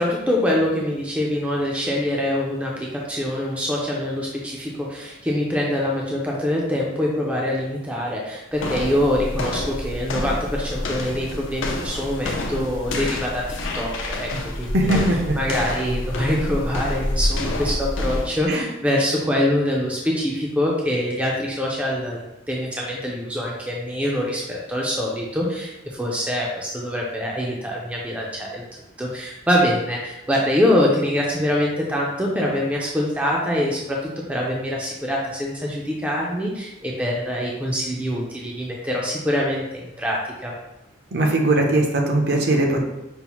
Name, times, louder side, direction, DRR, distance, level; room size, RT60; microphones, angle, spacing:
voice 1, 0.0-13.4 13.7-14.3 14.6-15.0 15.4-28.6 29.0-34.0 34.3-40.5, left 1 dB, 5° right, -3 dB, 0.4 m, -24 dB
sound 1, 8.5-18.5, left 1 dB, 80° left, 0.5 m, -28 dB
voice 2, 14.7-15.4 18.5-18.6 41.1-42.8, right 1 dB, 55° right, 1 dB, 0.6 m, -20 dB
5.4 x 2.0 x 2.9 m, 0.96 s
head